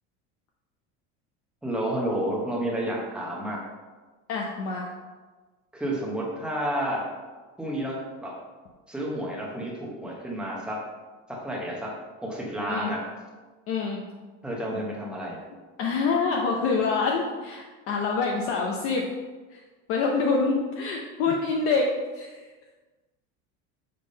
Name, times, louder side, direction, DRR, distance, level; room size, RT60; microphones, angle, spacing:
voice 1, 1.6-3.7 5.7-7.1 7.6-8.4 8.9-10.9 11.3-13.1 14.4-15.4, right 1 dB, 5° right, -3 dB, 0.9 m, -30 dB
voice 2, 4.3-4.9 12.7-12.9 13.7-14.0 15.8-19.1 19.5-19.6 19.9-21.9 22.2-22.4, left 4 dB, 45° left, 0 dB, 0.7 m, -26 dB
6.6 x 3.6 x 5.2 m, 1.3 s
cardioid pair, 175°, 31 cm